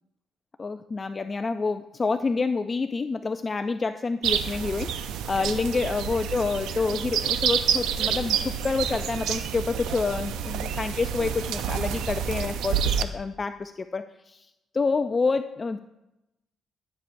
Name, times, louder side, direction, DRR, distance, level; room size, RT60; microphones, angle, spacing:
voice 1, 0.6-15.8, left 4 dB, 30° left, 9 dB, 0.3 m, -28 dB
sound 1, 4.2-13.0, right 8 dB, 90° right, 0.5 m, -28 dB
13.0 x 8.2 x 2.6 m, 0.93 s
cardioid pair, 90°, 0 cm